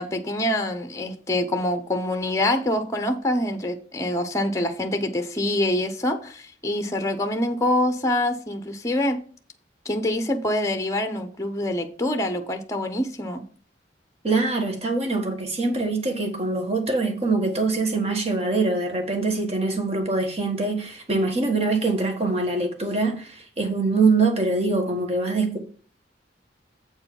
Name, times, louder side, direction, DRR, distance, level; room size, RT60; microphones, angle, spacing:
voice 1, 0.0-9.2 9.8-13.4, left 1 dB, 15° left, 0.8 m, -25 dB
voice 2, 14.2-25.6, right 3 dB, 35° right, 1.6 m, -24 dB
7.9 x 4.7 x 5.7 m
head